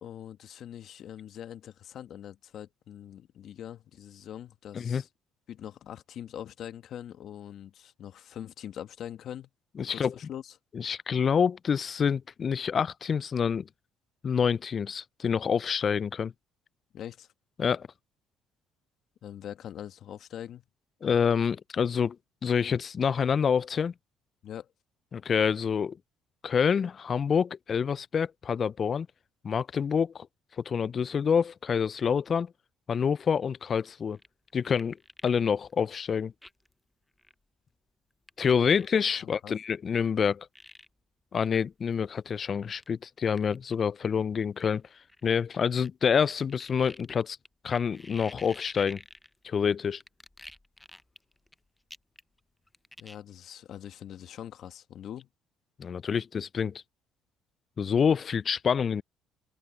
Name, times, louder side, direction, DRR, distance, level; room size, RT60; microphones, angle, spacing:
voice 1, 0.0-5.1 5.5-9.5 9.9-10.5 16.9-17.3 19.2-20.6 24.4-24.7 39.2-39.5 53.0-55.3, left 10 dB, 60° left, 1.5 m, -43 dB
voice 2, 9.8-10.1 10.7-13.7 14.2-16.3 17.6-17.9 21.0-22.2 22.4-23.9 25.1-26.0 26.4-29.1 29.4-30.3 30.6-32.5 32.9-34.2 34.5-35.0 35.2-36.3 38.4-40.5 41.3-44.8 45.2-47.4 47.6-49.0 49.4-50.0 55.8-56.7 57.8-59.0, left 6 dB, 45° left, 0.3 m, -27 dB
sound 1, 34.1-35.4 35.7-35.8 36.4-36.7 37.2-37.3 38.3-39.2 40.0-40.1 40.5-40.9 41.5-41.6 41.9-42.0 42.8-42.9 43.4-43.7 44.6-45.9 46.2-49.6 50.0-51.5 51.9-52.4 52.7-53.2, left 2 dB, 15° left, 0.7 m, -49 dB
hypercardioid pair, 65°, 0 cm